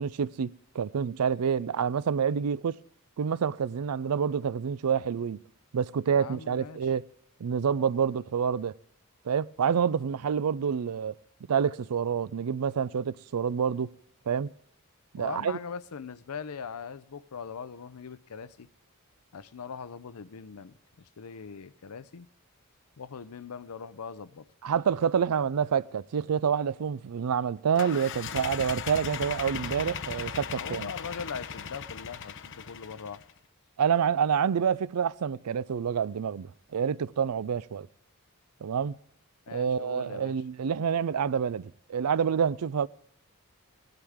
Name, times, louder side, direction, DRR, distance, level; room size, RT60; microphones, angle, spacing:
voice 1, 0.0-2.8 3.2-5.4 5.7-7.0 7.4-8.7 9.2-11.2 11.5-13.9 14.3-14.5 15.1-15.6 24.6-30.9 33.8-37.9 38.6-39.0 39.5-42.9, right 7 dB, 85° right, 0.4 m, -28 dB
voice 2, 6.1-6.9 15.1-18.7 19.3-22.3 23.0-24.5 30.5-33.2 39.5-40.3, left 6 dB, 85° left, 0.6 m, -41 dB
sound 1, 27.8-33.3, left 6 dB, 55° left, 0.8 m, -37 dB
17.0 x 11.5 x 3.6 m
head